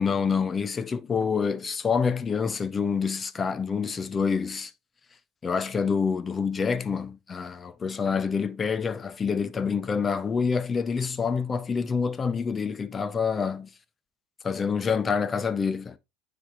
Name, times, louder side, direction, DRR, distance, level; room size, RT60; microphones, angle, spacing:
voice 1, 0.0-4.7 5.4-13.7 14.4-16.0, left 5 dB, 25° left, 0.6 m, -27 dB
9.4 x 3.4 x 2.9 m
supercardioid pair, 100°, 0 cm